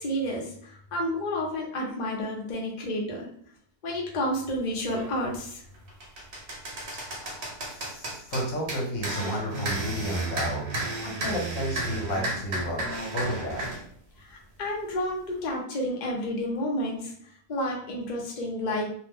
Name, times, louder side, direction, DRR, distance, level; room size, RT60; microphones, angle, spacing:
voice 1, 0.0-3.3 3.8-5.6 14.2-17.1 17.5-19.0, left 1 dB, 85° left, -1 dB, 0.4 m, -30 dB
sound 1, 4.9-5.1 5.6-13.8, right 2 dB, 50° right, 0.7 m, -33 dB
voice 2, 7.0-12.8 13.1-13.7, equal, 60° left, -2 dB, 1.1 m, -32 dB
2.8 x 2.0 x 3.5 m, 0.62 s
omnidirectional pair, 1.8 m